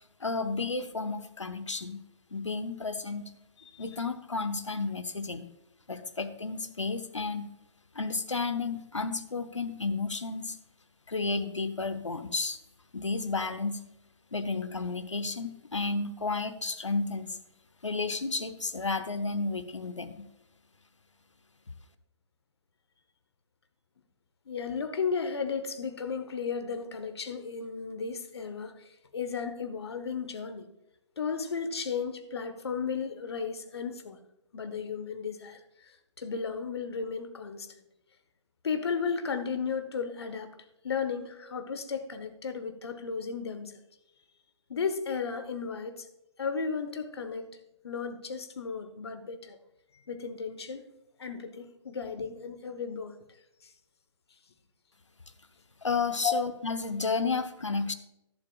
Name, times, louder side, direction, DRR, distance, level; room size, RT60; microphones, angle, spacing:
voice 1, 0.2-2.0 2.3-3.3 3.8-5.5 5.9-7.5 7.9-10.6 11.1-12.6 12.9-13.8 14.3-17.4 17.8-20.3 55.8-57.9, left 4 dB, 80° left, 10 dB, 0.9 m, -32 dB
voice 2, 24.5-30.7 31.2-34.2 34.5-37.7 38.6-40.5 40.8-43.8 44.7-46.1 46.4-47.5 47.8-49.6 50.1-50.8 51.2-53.2 53.6-53.7 56.2-56.4, left 5 dB, 60° left, 9 dB, 1.2 m, -34 dB
14.5 x 11.5 x 2.4 m, 0.85 s
figure-of-eight pair, 130°, 15 cm